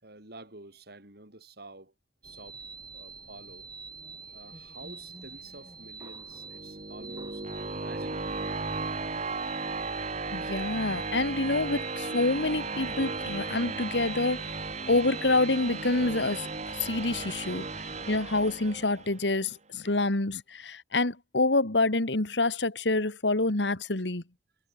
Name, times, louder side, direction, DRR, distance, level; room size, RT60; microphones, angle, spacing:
voice 1, 0.0-1.9 2.2-2.6 2.9-3.7 4.3-8.4 19.9-20.0, right 2 dB, 65° right, 5.7 m, -49 dB
sound 1, 2.2-18.2, right 4 dB, 25° right, 2.9 m, -46 dB
sound 2, 6.3-19.3, right 3 dB, 40° right, 2.7 m, -35 dB
voice 2, 10.3-14.4 14.9-17.7 18.1-24.2, left 2 dB, 80° left, 2.1 m, -27 dB
head